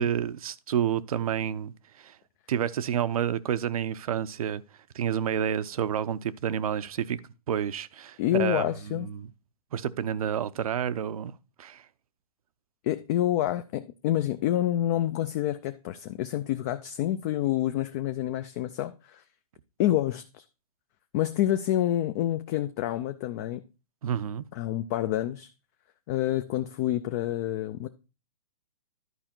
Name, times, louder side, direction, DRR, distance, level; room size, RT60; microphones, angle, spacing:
voice 1, 0.0-2.2 2.5-4.6 4.9-7.2 7.5-9.3 9.7-11.3 11.6-11.8 24.0-24.5, right 9 dB, 65° right, 0.6 m, -29 dB
voice 2, 8.2-9.1 12.8-19.2 19.8-20.4 21.1-23.6 24.5-25.5 26.1-27.9, left 13 dB, 25° left, 0.3 m, -28 dB
11.0 x 5.0 x 4.4 m
hypercardioid pair, 145°, 20 cm